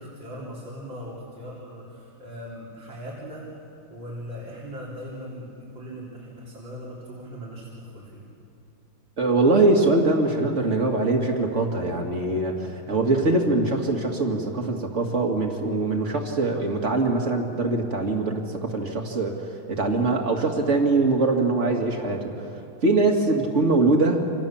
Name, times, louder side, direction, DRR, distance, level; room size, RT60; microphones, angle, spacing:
voice 1, 0.0-3.5 3.9-5.5 5.7-8.2, equal, 75° right, -5 dB, 4.3 m, -39 dB
voice 2, 9.2-22.3 22.8-24.3, right 2 dB, 40° right, 2 dB, 2.7 m, -22 dB
29.0 x 26.5 x 7.3 m, 2.8 s
omnidirectional pair, 2.1 m